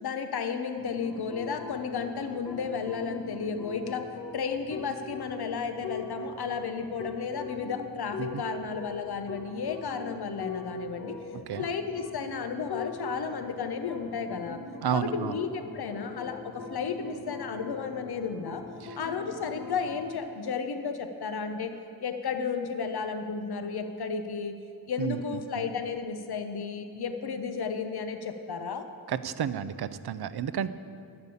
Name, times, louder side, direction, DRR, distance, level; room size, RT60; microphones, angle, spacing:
voice 1, 0.0-4.1 4.3-11.2 11.6-14.6 14.9-18.6 19.0-21.7 22.0-24.5 24.9-28.8, left 5 dB, 65° left, 7 dB, 0.8 m, -33 dB
sound 1, 0.8-20.2, left 3 dB, 85° left, 1.5 m, -41 dB
voice 2, 14.8-15.4 18.8-19.0 25.0-25.2 25.5-25.6 29.1-30.7, right 9 dB, 70° right, 14 dB, 0.6 m, -31 dB
11.0 x 7.0 x 8.3 m, 2.4 s
wide cardioid pair, 70°, 40 cm